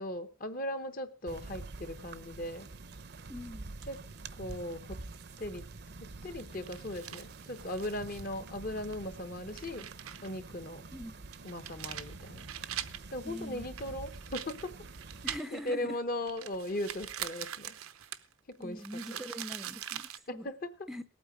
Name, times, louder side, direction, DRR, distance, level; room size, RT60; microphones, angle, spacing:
voice 1, 0.0-2.7 3.9-4.0 4.4-5.0 5.4-5.6 6.0-9.9 10.2-10.8 11.4-12.4 13.1-14.7 15.5-17.8 18.5-18.8 19.1-19.2 20.3-20.7, left 1 dB, 40° left, 10 dB, 0.9 m, -38 dB
sound 1, 1.3-15.4, right 3 dB, 50° right, 0.7 m, -47 dB
sound 2, 2.8-3.4 3.8-4.2 4.5-4.6 5.0-5.9 6.2-8.3 8.7-8.8 9.4-10.3 10.7-10.8 11.3-13.1 13.8-15.8 16.2-20.2, right 11 dB, 90° right, 0.9 m, -43 dB
voice 2, 3.3-3.7 10.9-11.2 13.2-13.7 15.2-16.0 18.6-20.5 20.9-21.0, equal, ahead, 11 dB, 0.5 m, -43 dB
18.5 x 8.8 x 5.0 m, 0.39 s
head